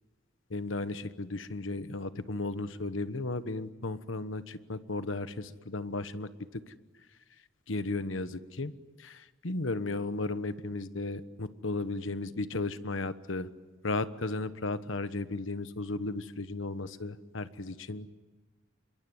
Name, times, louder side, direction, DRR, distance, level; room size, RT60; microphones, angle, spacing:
voice 1, 0.5-6.7 7.7-8.7 9.0-13.5 13.8-18.1, left 2 dB, 80° left, 12 dB, 1.2 m, -35 dB
27.0 x 22.5 x 9.5 m, 1.2 s
head